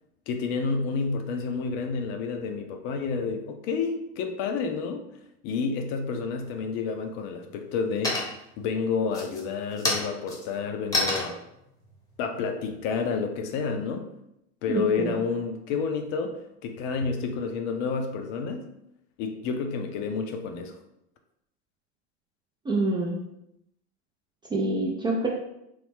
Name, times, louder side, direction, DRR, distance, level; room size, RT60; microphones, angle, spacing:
voice 1, 0.3-5.0 5.4-8.3 8.6-11.4 12.2-14.1 14.6-18.6 19.2-20.7, left 5 dB, 55° left, 6 dB, 0.5 m, -29 dB
sound 1, 6.5-7.0 7.4-8.6 9.0-13.5, left 1 dB, 10° left, 0.8 m, -31 dB
voice 2, 14.7-15.2 22.7-23.2 24.5-25.3, right 2 dB, 15° right, -2 dB, 0.3 m, -26 dB
3.1 x 2.0 x 3.3 m, 0.81 s
supercardioid pair, 105°, 34 cm